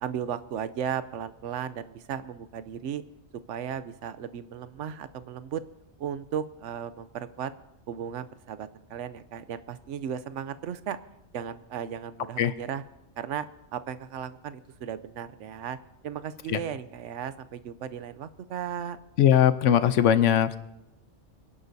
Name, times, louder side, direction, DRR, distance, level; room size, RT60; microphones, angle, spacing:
voice 1, 0.0-3.0 3.5-5.6 6.0-7.5 7.9-11.0 11.3-12.8 13.2-15.8 16.0-19.0, right 8 dB, 80° right, 13 dB, 1.0 m, -35 dB
voice 2, 19.2-20.6, left 10 dB, 90° left, 12 dB, 1.0 m, -20 dB
26.5 x 11.0 x 2.7 m, 0.91 s
omnidirectional pair, 1.2 m